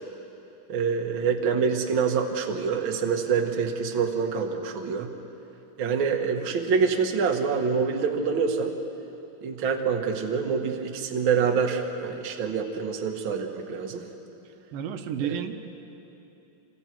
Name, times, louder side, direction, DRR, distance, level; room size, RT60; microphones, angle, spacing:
voice 1, 0.7-5.1 5.8-8.7 9.4-14.0 15.2-15.3, right 5 dB, 45° right, 3 dB, 1.7 m, -26 dB
voice 2, 14.7-15.6, right 8 dB, 75° right, 7 dB, 2.8 m, -31 dB
29.5 x 27.0 x 4.6 m, 2.9 s
omnidirectional pair, 4.3 m